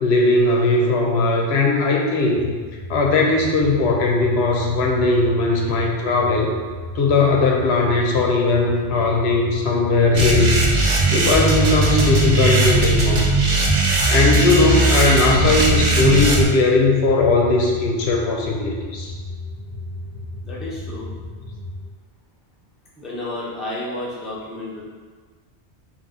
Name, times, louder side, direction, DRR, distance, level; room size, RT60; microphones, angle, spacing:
voice 1, 0.0-2.5 2.9-6.5 6.9-13.3 14.1-19.1, left 3 dB, 75° left, 0 dB, 0.8 m, -18 dB
sound 1, 2.3-21.8, left 1 dB, 70° right, 0.9 m, -34 dB
sound 2, 10.1-16.4, right 2 dB, 45° right, 0.6 m, -18 dB
voice 2, 20.4-21.1 23.0-24.8, left 1 dB, ahead, -6 dB, 0.5 m, -31 dB
4.0 x 2.5 x 3.6 m, 1.5 s
omnidirectional pair, 1.1 m